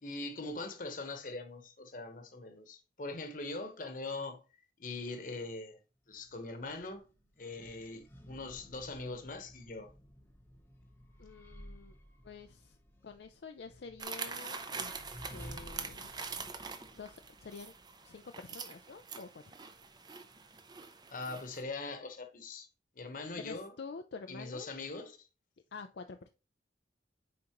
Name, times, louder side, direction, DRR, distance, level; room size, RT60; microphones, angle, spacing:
voice 1, 0.0-4.4 4.8-5.8 6.1-7.0 7.4-9.9 21.1-22.7 22.9-23.7 24.3-25.3, left 2 dB, 50° left, 1.1 m, -42 dB
sound 1, 6.1-18.2, equal, 10° left, 0.8 m, -55 dB
voice 2, 11.2-12.0 12.2-12.8 13.0-16.1 16.9-17.7 18.0-19.5 23.4-24.7 25.7-26.3, left 4 dB, 70° left, 0.5 m, -48 dB
sound 2, 14.0-21.6, right 5 dB, 25° right, 0.6 m, -44 dB
9.4 x 3.8 x 3.0 m
head